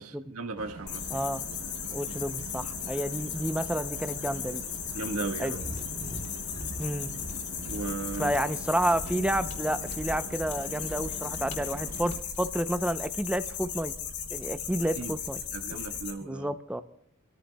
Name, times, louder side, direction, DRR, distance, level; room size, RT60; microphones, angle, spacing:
voice 1, 0.0-1.1 4.9-5.6 7.7-8.4 15.0-15.1 15.5-16.5, right 3 dB, 85° right, 5 dB, 1.6 m, -36 dB
sound 1, 0.6-12.2, right 2 dB, 65° right, 1.0 m, -44 dB
sound 2, 0.9-16.1, left 8 dB, 80° left, 3.7 m, -37 dB
voice 2, 1.1-1.4 1.9-4.6 5.4-5.6 6.8-7.1 8.2-13.9 14.3-15.4 15.7-15.8 16.2-16.8, right 1 dB, 5° right, 11 dB, 0.6 m, -30 dB
Mechanisms, 5.4-12.6, left 1 dB, 35° left, 2.6 m, -42 dB
27.5 x 14.0 x 2.3 m, 0.74 s
head